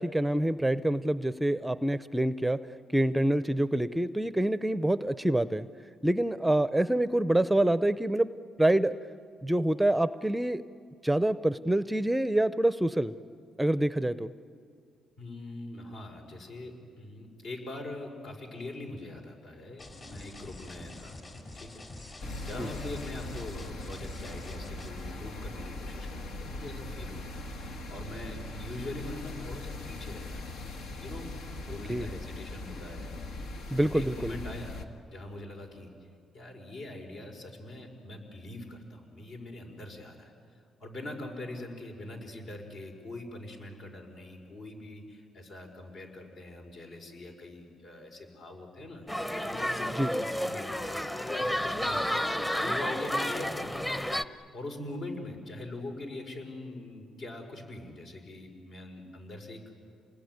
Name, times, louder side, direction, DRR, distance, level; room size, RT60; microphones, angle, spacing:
voice 1, 0.0-2.6 2.9-5.7 6.0-8.3 8.6-9.0 9.4-10.6 11.0-13.1 13.6-14.3 22.6-22.7 31.9-32.1 33.7-34.4 49.9-50.1, right 1 dB, 5° right, 14 dB, 0.6 m, -26 dB
voice 2, 15.2-21.2 21.5-30.6 31.0-31.3 31.7-33.4 33.8-34.8 35.1-35.9 36.3-40.3 40.8-53.9 54.3-59.7, left 2 dB, 65° left, 3 dB, 5.5 m, -43 dB
sound 1, 19.8-25.1, left 2 dB, 40° left, 5.0 m, -46 dB
sound 2, 22.2-34.9, left 2 dB, 80° left, 1.8 m, -40 dB
sound 3, 49.1-54.2, equal, 10° left, 1.0 m, -31 dB
28.0 x 20.5 x 9.6 m, 2.4 s
cardioid pair, 90°, 0 cm